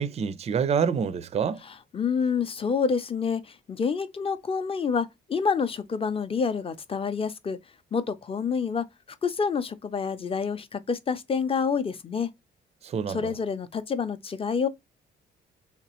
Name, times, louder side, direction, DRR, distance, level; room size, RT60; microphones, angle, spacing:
voice 1, 0.0-1.6 12.8-13.3, right 6 dB, 35° right, 0.4 m, -27 dB
voice 2, 1.6-3.4 3.7-7.6 7.9-8.9 9.2-12.3 13.1-14.7, left 5 dB, 30° left, 0.5 m, -28 dB
3.4 x 2.9 x 2.9 m
cardioid pair, 90°, 20 cm